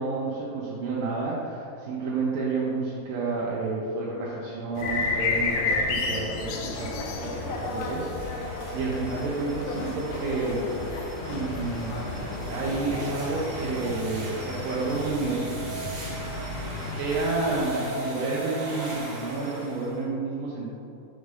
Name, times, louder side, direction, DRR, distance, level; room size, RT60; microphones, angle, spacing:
voice 1, 0.0-6.9 7.2-8.4 8.7-10.6 11.3-11.9 12.5-15.5 17.0-20.7, right 3 dB, 85° right, -6 dB, 2.4 m, -30 dB
sound 1, 4.8-13.0, left 3 dB, 80° left, 2.2 m, -31 dB
sound 2, 6.8-20.0, right 2 dB, 70° right, 3.1 m, -39 dB
sound 3, 11.2-17.6, left 2 dB, 65° left, 2.4 m, -37 dB
6.3 x 3.2 x 5.2 m, 2.6 s
omnidirectional pair, 4.0 m